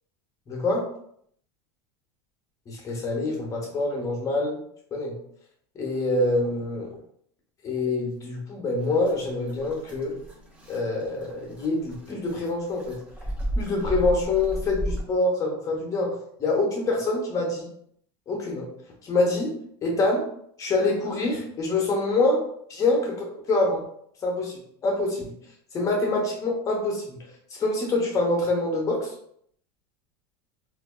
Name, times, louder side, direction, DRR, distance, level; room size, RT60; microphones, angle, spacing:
voice 1, 0.5-0.9 2.7-4.6 4.9-5.2 5.7-6.9 7.6-10.1 10.7-13.0 13.6-17.7 18.3-18.7 19.0-19.5 19.8-20.3 20.6-22.4 22.7-23.8 24.2-25.3 25.7-27.2 27.6-29.1, left 2 dB, 25° left, -1 dB, 0.8 m, -25 dB
sound 1, 8.8-15.0, right 1 dB, 10° right, 0.6 m, -34 dB
3.2 x 2.4 x 2.2 m, 0.68 s
supercardioid pair, 145°, 13 cm